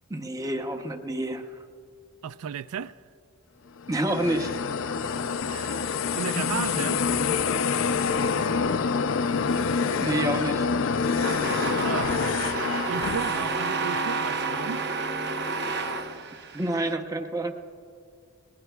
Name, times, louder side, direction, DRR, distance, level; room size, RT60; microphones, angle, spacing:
voice 1, 0.1-1.6 3.9-4.5 10.0-10.7 16.5-17.5, right 1 dB, 15° right, 0.7 m, -28 dB
voice 2, 2.2-2.9 5.5-7.0 11.2-11.5 11.8-12.1 12.9-15.1, right 7 dB, 85° right, 0.4 m, -35 dB
sound 1, 3.8-13.6, left 5 dB, 60° left, 0.4 m, -26 dB
sound 2, 11.2-16.9, right 4 dB, 50° right, 0.8 m, -30 dB
20.0 x 19.5 x 2.3 m
head